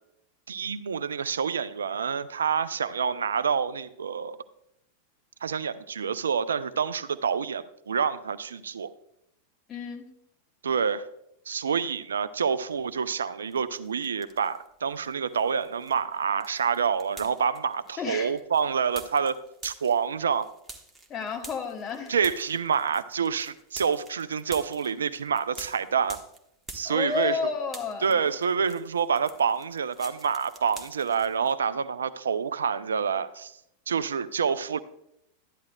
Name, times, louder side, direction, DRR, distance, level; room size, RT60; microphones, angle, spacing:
voice 1, 0.5-4.4 5.4-8.9 10.6-11.0 11.5-19.4 19.6-20.5 22.1-26.2 26.7-27.4 28.0-33.5 33.9-34.8, right 6 dB, 70° right, 0.4 m, -27 dB
voice 2, 9.7-10.0 18.0-18.3 21.1-22.1 26.8-28.2, left 5 dB, 25° left, 1.5 m, -31 dB
sound 1, 13.5-14.7 15.0-27.4 27.6-31.5, right 2 dB, 10° right, 1.2 m, -48 dB
12.5 x 10.5 x 2.2 m
figure-of-eight pair, 90°, 0 cm